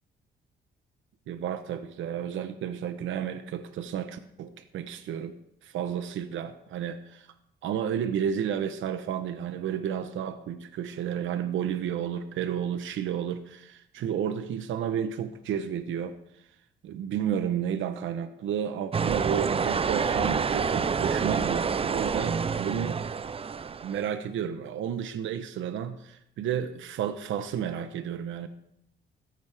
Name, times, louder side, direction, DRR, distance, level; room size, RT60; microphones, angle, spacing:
voice 1, 1.3-5.3 5.6-7.3 7.6-16.2 16.8-23.0 23.8-28.5, right 9 dB, 80° right, 10 dB, 1.0 m, -32 dB
sound 1, 18.9-24.1, right 6 dB, 30° right, 0.5 m, -28 dB
15.5 x 14.5 x 3.5 m, 0.76 s
cardioid pair, 90°, 20 cm